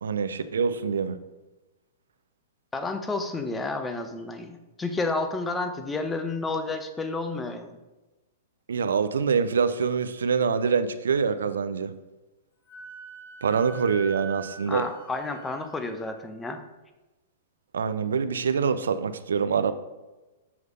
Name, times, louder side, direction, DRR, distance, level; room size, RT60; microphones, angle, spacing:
voice 1, 0.0-1.2 8.7-12.0 13.4-14.9 17.7-19.7, right 6 dB, 85° right, 11 dB, 0.5 m, -25 dB
voice 2, 2.7-7.8 14.7-16.6, left 3 dB, 10° left, 7 dB, 0.7 m, -31 dB
Wind instrument woodwind instrument, 12.7-16.1, right 3 dB, 75° left, 1.3 m, -44 dB
7.0 x 3.2 x 5.3 m, 1.1 s
hypercardioid pair, 125°, 0 cm